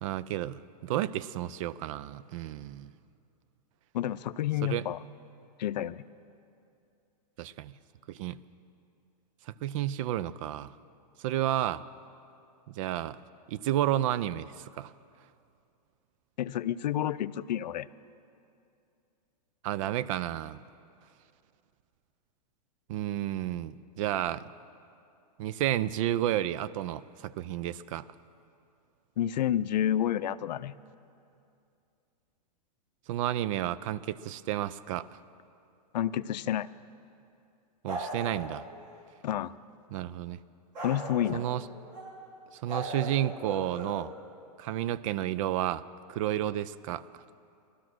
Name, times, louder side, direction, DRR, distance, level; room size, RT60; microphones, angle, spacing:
voice 1, 0.0-2.9 4.6-4.8 7.4-7.7 8.1-8.4 9.5-10.7 11.2-11.8 12.7-13.2 13.5-14.9 19.6-20.6 22.9-24.5 25.4-28.1 33.1-35.1 37.8-38.6 39.9-40.4 41.3-41.6 42.5-44.1 44.6-45.8 46.1-47.2, right 12 dB, 50° right, 17 dB, 0.5 m, -31 dB
voice 2, 3.9-5.0 5.6-6.0 16.4-17.9 29.2-30.8 35.9-36.7 39.2-39.5 40.8-41.4, left 11 dB, 85° left, 15 dB, 0.5 m, -29 dB
sound 1, 37.9-39.0 40.7-42.1 42.7-43.9, right 1 dB, 80° right, 5.0 m, -38 dB
16.0 x 12.5 x 6.1 m, 2.6 s
hypercardioid pair, 140°, 21 cm